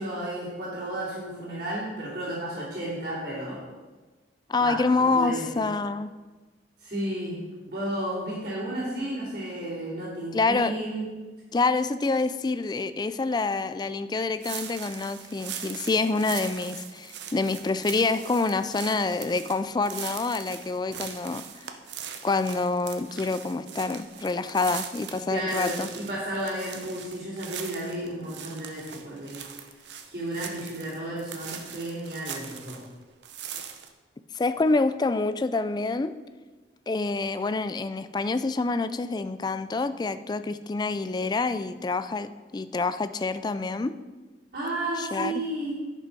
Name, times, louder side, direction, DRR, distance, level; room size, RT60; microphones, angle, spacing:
voice 1, 0.0-3.6 4.5-5.7 6.8-7.4 7.7-11.0 20.9-21.0 25.3-29.5 30.0-32.8 44.5-45.7, right 1 dB, 50° right, -12 dB, 3.1 m, -33 dB
voice 2, 4.5-6.1 10.3-10.7 11.5-21.4 22.2-25.9 34.3-36.1 36.9-42.3 42.5-43.9 45.0-45.4, left 3 dB, 25° left, 12 dB, 0.3 m, -27 dB
sound 1, 14.4-32.9 33.2-33.9, right 8 dB, 80° right, 0.8 m, -40 dB
10.5 x 5.3 x 5.3 m, 1.3 s
head